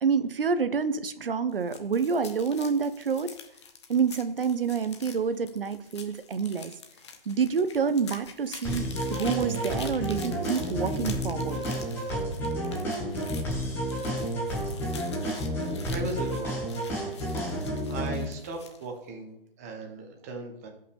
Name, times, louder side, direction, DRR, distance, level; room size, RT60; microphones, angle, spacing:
voice 1, 0.0-3.4 3.9-6.7 7.3-11.6 12.1-12.2, right 6 dB, 70° right, 12 dB, 0.9 m, -28 dB
sound 1, 1.5-18.9, left 5 dB, 30° left, 1.0 m, -47 dB
sound 2, 8.6-18.2, equal, 5° left, 1.5 m, -31 dB
voice 2, 15.9-16.5 17.9-20.7, right 3 dB, 15° right, 2 dB, 0.9 m, -37 dB
15.5 x 5.7 x 3.4 m, 0.76 s
hypercardioid pair, 160°, 29 cm